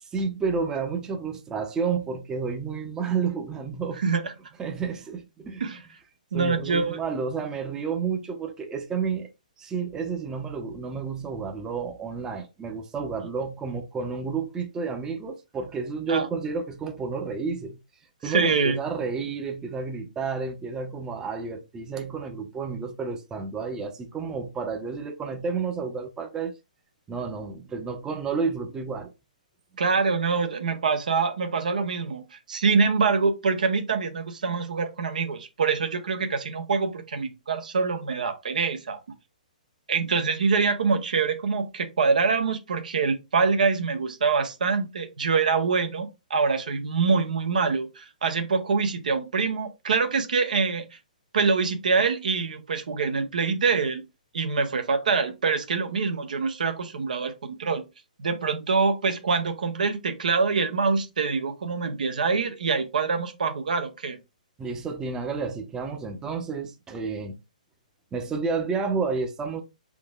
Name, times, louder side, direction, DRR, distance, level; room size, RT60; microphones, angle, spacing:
voice 1, 0.0-4.0 4.6-5.6 6.3-9.3 9.6-17.8 18.2-26.5 27.1-29.1 64.6-67.4 68.1-69.6, right 5 dB, 15° right, 0.7 m, -30 dB
voice 2, 4.0-4.3 5.6-5.8 6.3-7.0 16.1-16.3 18.2-18.8 29.8-39.0 39.9-50.8 51.3-54.0 54.3-57.8 58.2-64.2, right 4 dB, 70° right, 0.9 m, -25 dB
4.9 x 3.8 x 2.3 m
hypercardioid pair, 130°, 4 cm